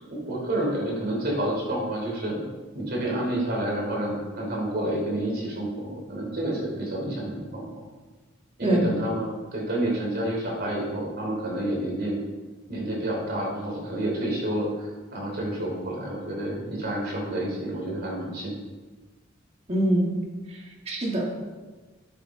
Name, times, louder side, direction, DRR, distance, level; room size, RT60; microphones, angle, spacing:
voice 1, 0.1-2.5 2.7-7.7 8.6-12.2 12.7-18.5, right 1 dB, 50° right, -2 dB, 3.2 m, -29 dB
voice 2, 19.7-20.1 20.5-21.5, right 1 dB, 30° right, -1 dB, 1.7 m, -25 dB
10.5 x 8.4 x 3.7 m, 1.3 s
head